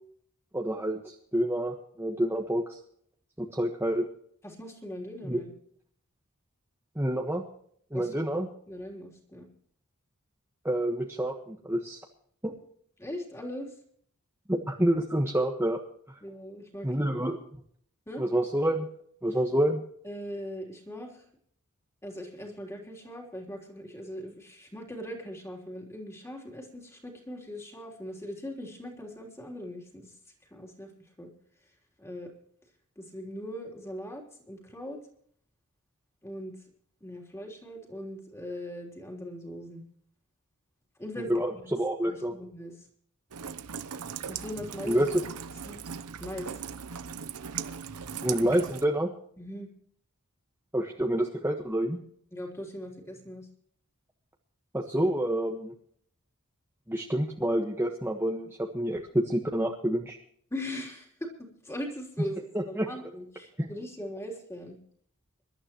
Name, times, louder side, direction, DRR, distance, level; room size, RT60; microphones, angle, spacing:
voice 1, 0.5-2.8 3.4-4.0 5.3-5.4 6.9-7.4 7.9-8.5 10.6-12.0 12.4-12.5 14.5-15.8 16.8-17.4 18.2-18.9 19.2-19.8 41.3-42.3 44.9-45.1 48.2-49.1 50.7-52.0 54.7-55.7 56.9-60.2 62.5-62.9 63.6-63.7, right 1 dB, 10° right, 0 dB, 1.4 m, -28 dB
voice 2, 4.4-5.5 7.9-8.4 8.7-9.5 13.0-13.7 16.2-17.1 18.1-18.2 20.0-21.1 22.0-30.1 30.5-30.9 31.2-31.3 32.0-32.3 33.0-35.0 36.2-36.6 37.0-39.8 41.0-41.3 41.6-41.8 42.0-42.7 44.3-45.1 45.7-45.8 46.2-46.5 49.4-49.7 52.3-53.5 60.5-61.1 61.4-64.8, equal, 10° left, 0 dB, 3.4 m, -40 dB
Rain, 43.3-48.9, right 7 dB, 90° right, 0.9 m, -38 dB
26.0 x 12.0 x 3.0 m, 0.63 s
head